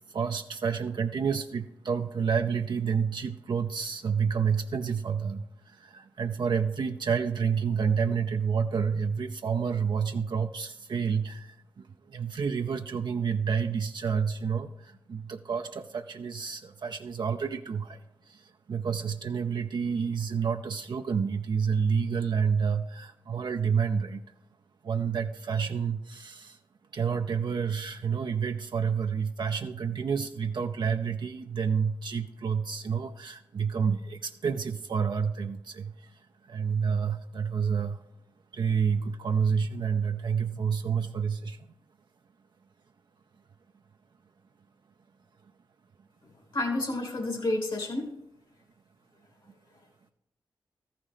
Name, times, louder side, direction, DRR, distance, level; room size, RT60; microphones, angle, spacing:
voice 1, 0.1-18.0 18.3-24.2 24.8-26.6 26.9-36.2 36.5-38.0 38.5-41.7, right 6 dB, 60° right, 5 dB, 0.5 m, -29 dB
voice 2, 46.5-48.1, left 2 dB, 65° left, 3 dB, 2.8 m, -29 dB
13.5 x 5.8 x 5.0 m, 0.82 s
supercardioid pair, 40°, 9 cm